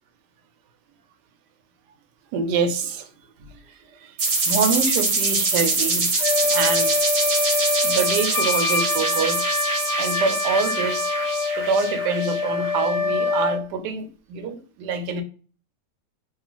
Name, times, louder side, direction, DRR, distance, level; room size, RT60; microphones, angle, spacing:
voice 1, 2.3-3.1 3.7-4.2 4.5-6.1 6.5-7.0 7.8-9.4 10.0-11.1 11.6-15.2, right 5 dB, 85° right, 1.2 m, -26 dB
sound 1, 4.2-12.7, right 3 dB, 50° right, 1.0 m, -24 dB
Wind instrument woodwind instrument, 6.2-13.6, left 4 dB, 70° left, 0.7 m, -25 dB
3.0 x 2.3 x 2.9 m
omnidirectional pair, 1.8 m